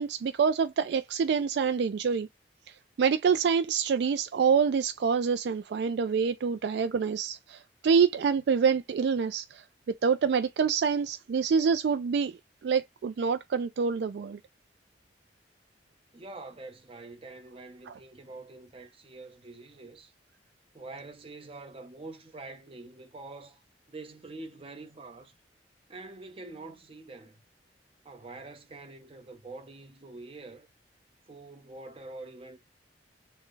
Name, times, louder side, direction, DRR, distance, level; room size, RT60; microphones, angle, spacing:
voice 1, 0.0-2.3 2.7-9.6 10.0-14.4 17.9-18.0, right 6 dB, 65° right, 0.3 m, -26 dB
voice 2, 16.1-20.1 20.7-23.6 23.9-25.3 25.9-27.4 28.0-30.7 31.3-32.6, right 2 dB, 35° right, 0.8 m, -45 dB
4.3 x 2.1 x 3.2 m
head